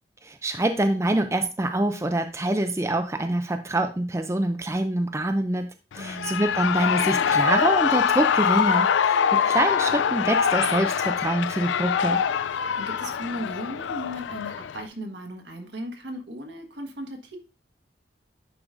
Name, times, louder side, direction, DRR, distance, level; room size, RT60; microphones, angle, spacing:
voice 1, 0.2-5.7 5.9-12.2, right 1 dB, 15° right, 6 dB, 0.4 m, -25 dB
Shout / Cheering, 5.9-14.9, left 7 dB, 90° left, 0.4 m, -24 dB
voice 2, 5.9-6.4 12.5-17.4, equal, 80° right, 4 dB, 1.4 m, -37 dB
9.8 x 4.7 x 2.5 m, 0.31 s
head